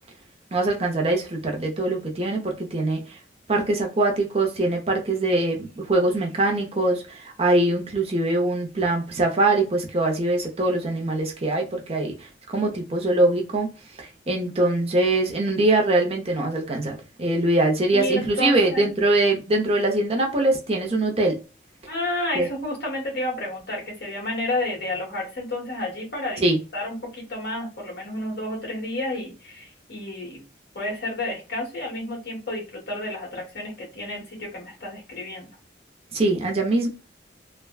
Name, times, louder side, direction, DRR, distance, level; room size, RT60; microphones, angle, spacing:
voice 1, 0.5-3.2 3.5-13.7 14.0-21.4 22.4-22.5 26.4-26.6 36.1-36.9, right 2 dB, 35° right, 0.6 m, -23 dB
voice 2, 17.9-18.9 21.9-26.4 26.7-30.4 30.8-35.5, left 1 dB, 60° left, 1.6 m, -30 dB
3.3 x 2.1 x 2.3 m
head